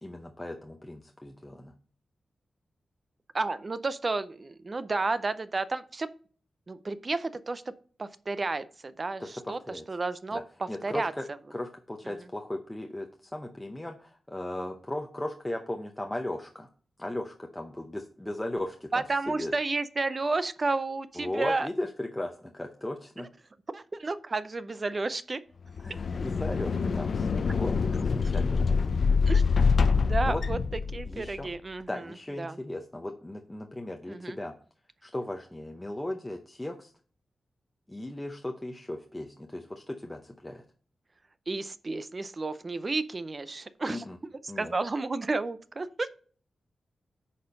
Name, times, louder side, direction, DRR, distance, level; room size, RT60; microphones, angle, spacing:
voice 1, 0.0-1.7 9.2-9.8 10.3-10.4 10.7-11.2 11.5-16.7 17.0-19.5 21.2-23.3 25.8-27.7 28.0-28.7 30.0-30.4 31.0-31.5 31.9-34.5 35.0-36.9 37.9-40.6 43.9-44.2 44.5-44.7, left 1 dB, 10° left, 3 dB, 0.7 m, -37 dB
voice 2, 3.3-6.1 6.7-7.6 8.0-9.6 9.9-11.1 18.9-21.7 23.7-25.4 29.3-29.4 30.0-30.6 30.9-32.1 32.4-32.6 34.1-34.4 41.5-44.3 44.6-46.1, right 3 dB, 30° right, 14 dB, 0.5 m, -31 dB
sound 1, 25.7-31.3, left 5 dB, 55° left, 0.5 m, -25 dB
9.6 x 4.4 x 5.2 m, 0.43 s
wide cardioid pair, 160°, 0 cm